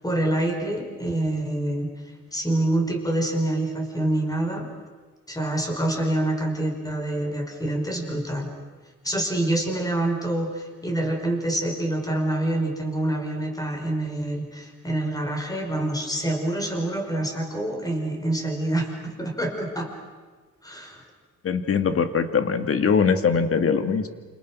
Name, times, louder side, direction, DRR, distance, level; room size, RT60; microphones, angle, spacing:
voice 1, 0.0-1.9 2.3-4.7 5.3-8.5 9.0-19.9 20.6-21.0, right 1 dB, 10° left, 3 dB, 5.2 m, -26 dB
voice 2, 21.4-24.1, left 6 dB, 45° left, 8 dB, 2.2 m, -22 dB
28.5 x 28.5 x 6.2 m, 1.4 s
cardioid pair, 130°, 32 cm